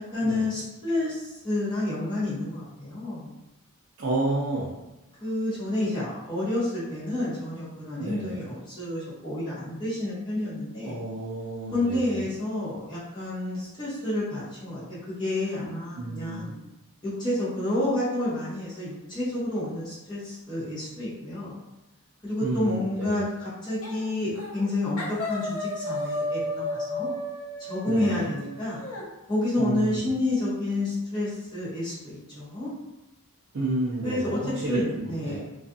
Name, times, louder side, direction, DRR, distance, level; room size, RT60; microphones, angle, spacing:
voice 1, 0.0-3.3 5.2-11.0 11.7-16.5 17.0-21.6 22.2-27.1 27.6-28.8 29.3-32.7 34.0-35.4, left 1 dB, 20° left, -12 dB, 0.9 m, -29 dB
voice 2, 4.0-4.7 8.0-8.4 10.8-12.3 16.0-16.5 22.4-23.2 27.9-28.3 29.6-30.0 33.5-35.4, right 2 dB, 55° right, -6 dB, 0.4 m, -31 dB
sound 1, 23.8-24.1 24.3-24.7 25.0-29.0, left 1 dB, 90° left, 0.6 m, -33 dB
2.3 x 2.3 x 2.6 m, 0.96 s
head